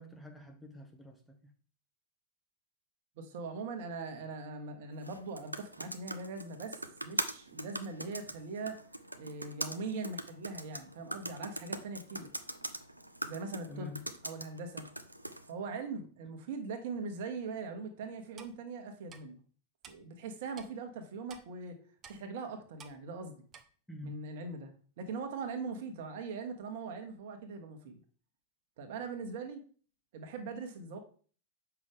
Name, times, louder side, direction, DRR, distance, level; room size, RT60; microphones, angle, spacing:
voice 1, 0.0-1.5 13.7-14.0 23.9-24.2, left 2 dB, 5° left, 1.1 m, -47 dB
voice 2, 3.2-8.8 9.2-12.3 13.2-14.8 15.5-19.4 19.9-21.8 22.1-23.4 24.0-28.0 28.8-29.6 30.1-31.0, right 4 dB, 50° right, 1.4 m, -41 dB
sound 1, 5.0-15.5, right 1 dB, 85° right, 0.6 m, -42 dB
Clock, 18.4-18.5 19.1-19.2 19.8-20.0 20.6-20.7 21.3-21.4 22.0-22.2 22.8-23.0 23.5-23.6, right 6 dB, 25° right, 0.9 m, -51 dB
7.7 x 5.9 x 3.6 m
figure-of-eight pair, 90°, 0 cm